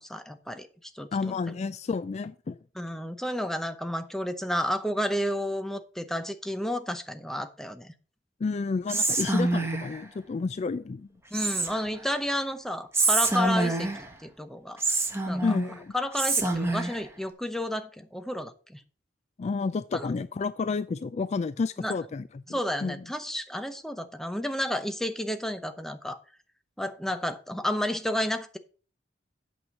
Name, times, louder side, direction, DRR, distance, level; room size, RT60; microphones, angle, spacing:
voice 1, 0.0-1.1 2.8-7.9 11.3-13.9 14.2-14.8 15.3-15.4 15.9-18.8 19.9-20.1 21.8-22.0 22.5-26.2 26.8-28.6, equal, ahead, 0.8 m, -31 dB
voice 2, 1.1-2.6 8.4-11.1 15.4-15.9 19.4-23.0, left 4 dB, 35° left, 0.3 m, -30 dB
Whispering, 8.9-10.0 11.3-12.0 12.9-14.1 14.8-15.7 16.1-17.0, right 2 dB, 15° right, 1.4 m, -26 dB
8.7 x 6.3 x 5.4 m
head